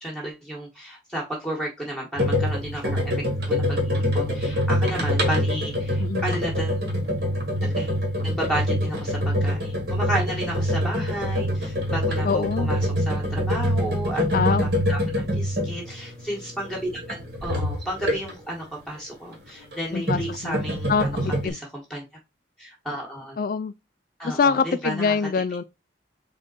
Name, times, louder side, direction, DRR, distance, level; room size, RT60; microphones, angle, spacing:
voice 1, 0.0-3.1 3.5-6.8 7.6-7.9 8.2-14.4 14.9-21.1 21.4-22.0 22.6-23.4 24.2-25.2, right 1 dB, 5° left, 1.2 m, -32 dB
sound 1, 2.2-18.5 19.6-21.5, equal, 65° right, 1.6 m, -25 dB
voice 2, 12.2-12.7 14.3-14.6 19.9-20.6 20.9-21.1 21.4-21.6 23.4-23.7 24.2-25.6, left 5 dB, 55° left, 0.3 m, -24 dB
3.7 x 3.6 x 3.9 m
head